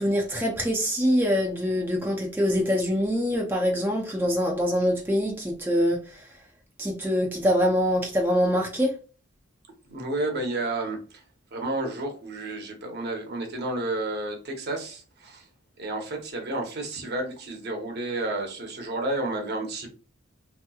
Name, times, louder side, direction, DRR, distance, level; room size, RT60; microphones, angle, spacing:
voice 1, 0.0-6.3 6.8-8.9, equal, 10° right, 0.4 m, -24 dB
voice 2, 9.9-11.2 11.5-15.5 15.8-19.9, right 2 dB, 55° right, 0.8 m, -31 dB
3.2 x 2.9 x 2.3 m
head